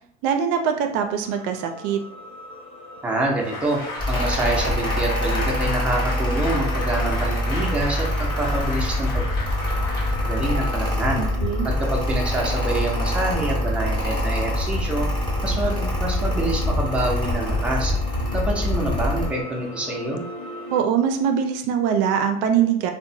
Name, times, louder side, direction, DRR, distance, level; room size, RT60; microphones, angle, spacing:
voice 1, 0.2-2.0 11.2-11.7 20.7-22.9, right 8 dB, 70° right, 5 dB, 0.4 m, -22 dB
sound 1, 1.2-20.8, left 2 dB, 80° left, 0.6 m, -39 dB
voice 2, 3.0-3.8 4.1-9.3 10.2-11.3 11.6-15.1 15.4-17.9 18.3-20.2, right 2 dB, 5° right, -2 dB, 0.5 m, -26 dB
Applause, 3.3-11.0, left 2 dB, 55° left, 0.9 m, -33 dB
Mechanical fan, 4.0-19.3, left 1 dB, 20° left, 0.9 m, -24 dB
2.8 x 2.0 x 2.6 m, 0.68 s
cardioid pair, 145°, 19 cm